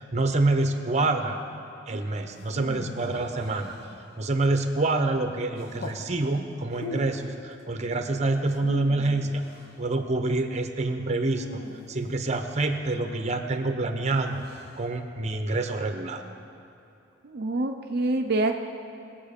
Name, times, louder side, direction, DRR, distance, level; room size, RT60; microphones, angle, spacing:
voice 1, 0.1-1.4 1.9-3.7 4.2-9.4 9.8-11.6 11.9-14.4 14.8-16.2, right 2 dB, 35° right, 6 dB, 0.9 m, -27 dB
voice 2, 1.9-2.6 17.2-18.5, right 2 dB, 55° right, 4 dB, 0.6 m, -28 dB
sound 1, 2.3-4.3 5.6-6.1 6.7-7.4 8.4-9.8 11.3-12.5 14.1-14.8, left 2 dB, 55° left, 1.1 m, -40 dB
20.5 x 7.5 x 5.2 m, 2.6 s
head